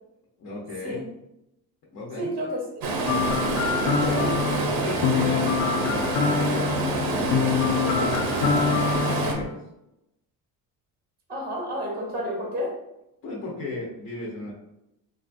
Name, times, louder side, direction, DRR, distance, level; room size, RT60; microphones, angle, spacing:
voice 1, 0.4-1.0 1.9-2.3 4.1-4.2 4.7-5.5 5.9-6.7 7.2-9.5 13.2-14.5, left 2 dB, 40° left, -4 dB, 0.7 m, -35 dB
voice 2, 2.2-2.9 4.0-4.3 11.3-12.7, equal, 25° right, -1 dB, 0.8 m, -30 dB
Stream, 2.8-9.3, right 2 dB, 60° right, 0.7 m, -27 dB
sound 1, 3.1-9.4, left 6 dB, 85° left, 0.5 m, -26 dB
3.5 x 2.3 x 2.5 m, 0.86 s
cardioid pair, 155°, 39 cm